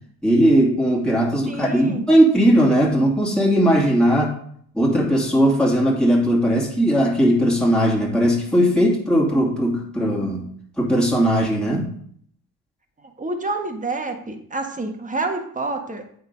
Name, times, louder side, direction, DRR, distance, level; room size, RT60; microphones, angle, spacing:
voice 1, 0.2-4.3 4.7-10.5 10.8-11.9, equal, ahead, -4 dB, 2.3 m, -18 dB
voice 2, 1.4-2.0 13.0-16.0, right 3 dB, 20° right, 5 dB, 1.4 m, -28 dB
8.1 x 3.9 x 5.2 m, 0.63 s
supercardioid pair, 70°, 39 cm